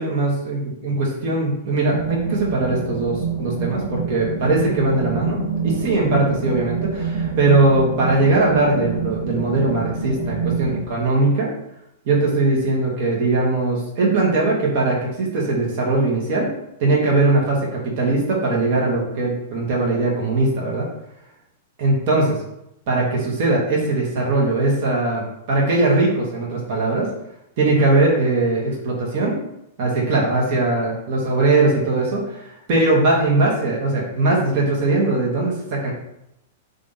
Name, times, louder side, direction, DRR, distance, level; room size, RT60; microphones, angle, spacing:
voice 1, 0.0-11.5 12.1-16.5 16.8-20.9 21.8-22.4 22.9-27.1 27.6-29.4 29.8-35.9, right 2 dB, 55° right, -3 dB, 1.2 m, -20 dB
sound 1, 1.9-10.8, right 4 dB, 80° right, 0.8 m, -26 dB
3.3 x 2.6 x 4.0 m, 0.83 s
hypercardioid pair, 105°, 0 cm